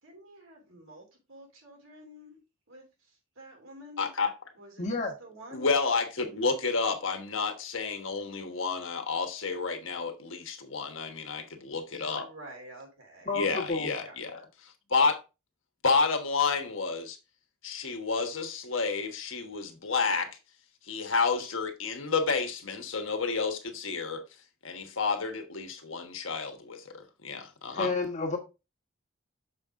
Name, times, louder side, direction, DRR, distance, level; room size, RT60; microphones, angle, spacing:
voice 1, 0.0-2.4 2.7-4.1 4.5-5.7 12.2-13.4 14.1-14.5, equal, 80° right, 3.2 m, -50 dB
voice 2, 4.0-4.3 5.5-12.3 13.3-14.4 14.9-15.2 15.8-17.2 17.6-20.3 20.9-24.2 24.6-27.9, left 4 dB, 70° left, 1.3 m, -30 dB
voice 3, 4.8-5.1 13.3-13.9 27.7-28.4, left 3 dB, 35° left, 1.5 m, -30 dB
6.7 x 5.4 x 3.6 m
head